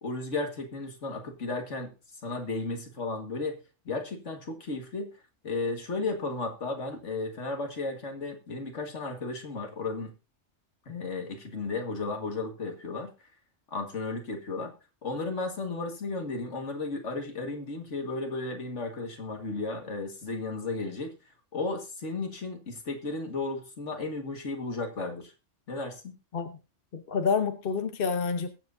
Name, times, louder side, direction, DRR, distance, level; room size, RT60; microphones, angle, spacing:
voice 1, 0.0-1.9 2.2-3.6 3.9-5.1 5.4-10.1 10.9-13.1 13.7-14.7 15.0-21.1 21.5-25.3 25.7-26.2, left 3 dB, 70° left, 4 dB, 2.1 m, -34 dB
voice 2, 26.9-28.5, left 5 dB, 50° left, 7 dB, 1.1 m, -28 dB
21.5 x 7.7 x 2.7 m, 0.30 s
omnidirectional pair, 1.3 m